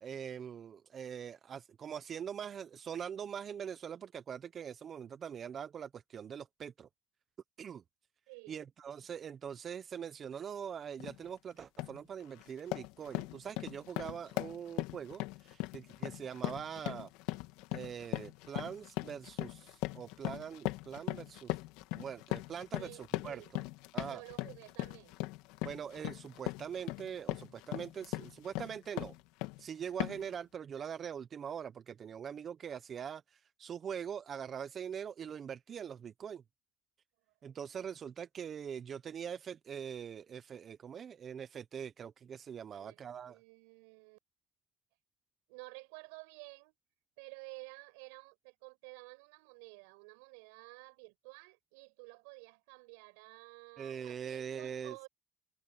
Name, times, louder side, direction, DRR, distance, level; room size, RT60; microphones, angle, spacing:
voice 1, 0.0-6.9 7.6-7.8 8.5-17.1 17.7-21.6 21.9-23.6 23.9-24.2 25.6-29.2 29.6-36.4 37.4-43.4 53.8-55.1, right 8 dB, 45° right, 1.1 m, -43 dB
voice 2, 8.3-8.6 22.7-23.6 24.0-25.2 42.7-44.2 45.5-46.7 47.2-55.1, right 35 dB, 85° right, 6.4 m, -52 dB
sound 1, 11.0-11.2 11.6-12.0 12.4-29.6 30.0-30.3, left 20 dB, 80° left, 2.0 m, -39 dB
supercardioid pair, 75°, 0 cm